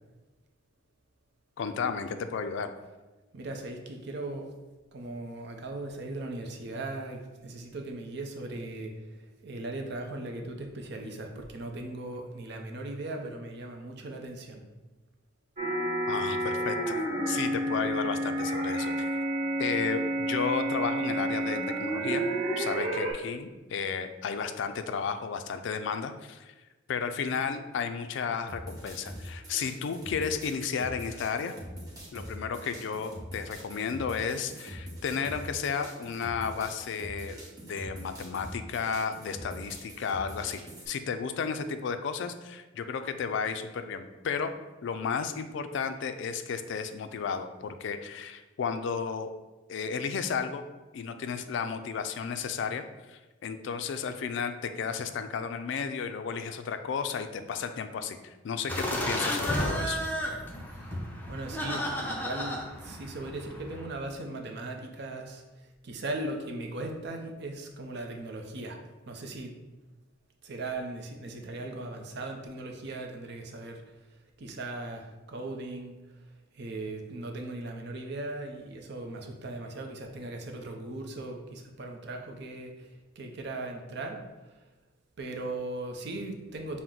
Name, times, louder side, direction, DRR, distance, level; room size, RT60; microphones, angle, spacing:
voice 1, 1.6-2.7 16.1-17.0 17.3-19.2 19.6-22.2 22.6-26.5 26.9-31.5 32.1-40.6 40.9-44.5 44.8-49.3 49.7-50.6 50.9-52.8 53.1-60.0, left 6 dB, 65° left, 9 dB, 0.3 m, -33 dB
voice 2, 3.3-4.5 4.9-14.6 60.7-68.8 69.0-69.5 70.4-73.8 74.4-76.0 76.5-84.2 85.2-86.8, right 2 dB, 60° right, 3 dB, 0.6 m, -38 dB
sound 1, 15.6-23.1, right 1 dB, 40° right, 1.4 m, -30 dB
sound 2, 28.5-40.9, equal, 20° right, 1.0 m, -43 dB
sound 3, 58.7-63.9, equal, 10° left, 0.5 m, -33 dB
5.9 x 2.1 x 3.8 m, 1.2 s
head